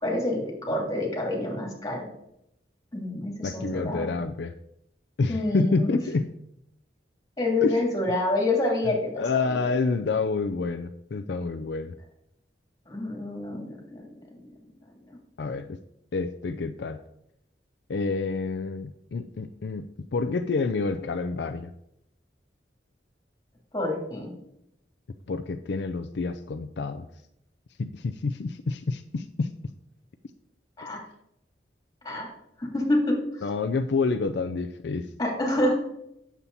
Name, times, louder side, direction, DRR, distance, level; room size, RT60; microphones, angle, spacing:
voice 1, 0.0-2.0 2.9-4.1 5.3-6.0 7.4-9.8 12.9-14.0 23.7-24.3 30.8-31.0 32.0-32.3 32.6-33.2 35.2-35.8, left 1 dB, 20° left, -2 dB, 2.9 m, -27 dB
voice 2, 3.4-4.5 5.2-6.3 7.6-7.8 9.2-11.9 15.4-15.8 16.1-17.0 17.9-21.7 25.3-27.1 27.8-29.6 33.4-35.1, left 4 dB, 70° left, 8 dB, 0.5 m, -28 dB
8.5 x 7.3 x 4.1 m, 0.79 s
head